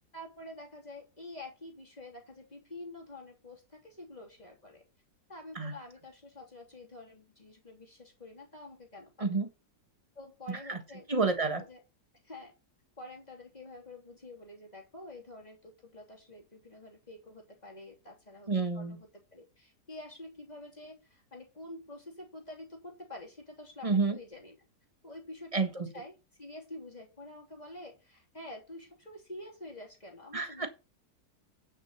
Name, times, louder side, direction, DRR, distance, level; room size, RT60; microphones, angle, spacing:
voice 1, 0.1-4.8 5.3-9.3 10.1-11.1 11.6-11.8 12.2-12.5 13.0-24.6 25.0-30.7, left 1 dB, 25° left, 3.4 m, -48 dB
voice 2, 10.5-10.8 11.1-11.6 18.5-19.0 23.8-24.2 25.5-25.9 30.3-30.7, right 4 dB, 20° right, 1.4 m, -29 dB
9.6 x 6.4 x 5.6 m
omnidirectional pair, 1.7 m